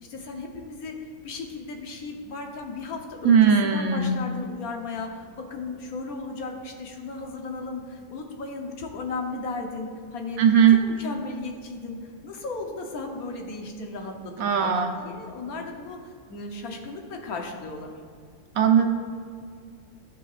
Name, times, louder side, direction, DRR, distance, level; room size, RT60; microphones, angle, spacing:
voice 1, 0.1-1.0 1.2-10.4 10.7-18.0, left 3 dB, 80° left, 3 dB, 1.4 m, -36 dB
voice 2, 3.2-4.1 10.4-10.8 14.4-14.9 18.5-18.9, right 7 dB, 75° right, 4 dB, 1.3 m, -18 dB
14.0 x 5.8 x 2.5 m, 2.2 s
omnidirectional pair, 1.5 m